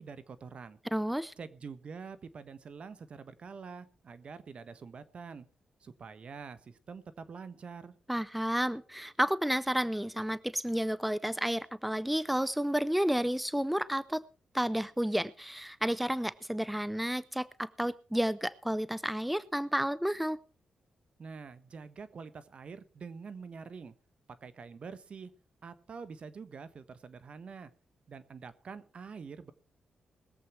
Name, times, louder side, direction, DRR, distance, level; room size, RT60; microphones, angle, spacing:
voice 1, 0.0-0.8 1.4-5.5 5.8-8.0 21.2-23.9 24.4-25.3 25.6-27.7 28.1-29.5, right 5 dB, 55° right, 14 dB, 1.3 m, -46 dB
voice 2, 0.9-1.3 8.1-14.2 14.5-20.4, equal, 5° right, 17 dB, 0.6 m, -31 dB
21.0 x 7.8 x 4.5 m, 0.37 s
cardioid pair, 60°, 2 cm